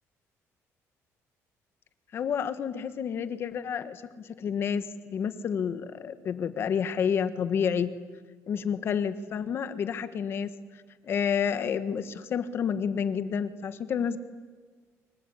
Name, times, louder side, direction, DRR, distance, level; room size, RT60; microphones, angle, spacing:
voice 1, 2.1-7.9 8.5-10.5 11.0-14.2, left 7 dB, 45° left, 11 dB, 1.5 m, -29 dB
25.0 x 23.5 x 10.0 m, 1.5 s
cardioid pair, 170°, 6 cm